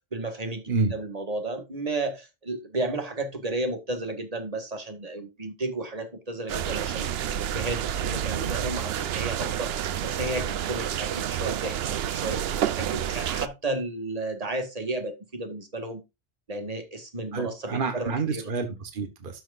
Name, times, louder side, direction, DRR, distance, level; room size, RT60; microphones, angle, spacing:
voice 1, 0.1-7.1 7.4-16.0 16.5-18.4, right 2 dB, 35° right, 1.9 m, -33 dB
sound 1, 6.5-13.5, right 10 dB, 65° right, 0.8 m, -29 dB
voice 2, 17.3-19.4, right 4 dB, 50° right, 1.5 m, -28 dB
12.5 x 6.2 x 2.5 m
omnidirectional pair, 1.2 m